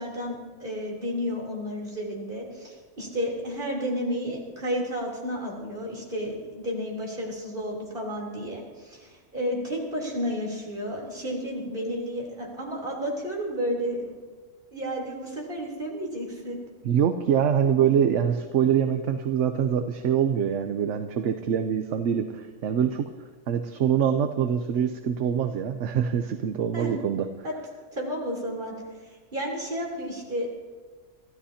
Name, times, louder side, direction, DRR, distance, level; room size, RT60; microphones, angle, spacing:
voice 1, 0.0-14.2 14.7-16.6 26.7-26.9 27.4-27.5 27.9-28.8 29.0-30.5, equal, 40° right, -2 dB, 3.7 m, -32 dB
voice 2, 16.8-23.1 23.5-27.3, right 8 dB, 65° right, 7 dB, 1.0 m, -24 dB
25.5 x 14.0 x 2.9 m, 1.4 s
omnidirectional pair, 1.5 m